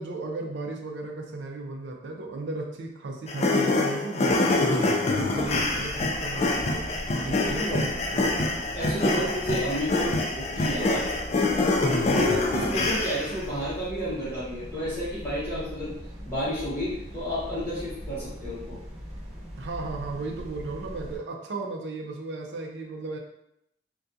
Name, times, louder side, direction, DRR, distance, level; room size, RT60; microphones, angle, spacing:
voice 1, 0.0-6.9 7.2-8.7 9.0-9.3 12.1-12.3 19.6-23.2, right 3 dB, 75° right, 2 dB, 0.4 m, -36 dB
sound 1, 3.3-13.4, left 2 dB, 35° left, 0.3 m, -25 dB
sound 2, 5.4-21.2, equal, 35° right, 0.7 m, -40 dB
voice 2, 7.3-7.9 8.7-11.0 12.1-15.9 16.3-18.8, equal, 15° left, -12 dB, 0.7 m, -31 dB
2.3 x 2.2 x 2.6 m, 0.77 s
head